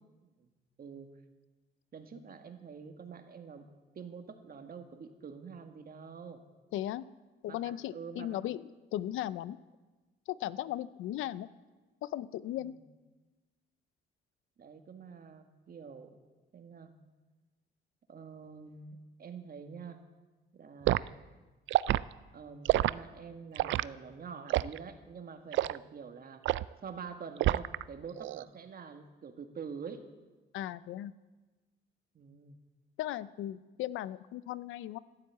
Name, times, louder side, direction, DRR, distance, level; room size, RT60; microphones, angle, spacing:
voice 1, 0.8-1.1 1.9-3.7 3.9-6.4 7.5-8.4 12.6-12.8 14.6-16.1 16.5-16.9 18.1-20.0 20.6-21.1 22.3-26.4 26.8-30.0 32.1-32.6, right 6 dB, 50° right, 6 dB, 1.9 m, -46 dB
voice 2, 6.7-7.0 7.4-8.6 8.9-9.6 10.3-11.5 12.0-12.8 30.5-31.1 33.0-35.0, left 13 dB, 85° left, 17 dB, 0.6 m, -37 dB
Liquid, 20.9-21.1 21.7-22.0 22.7-22.9 23.6-23.9 24.5-24.8 25.5-25.8 26.5-26.7 27.4-27.8 28.2-28.4, right 14 dB, 70° right, 0.4 m, -27 dB
12.5 x 12.5 x 8.3 m, 1.2 s
cardioid pair, 90°, 20 cm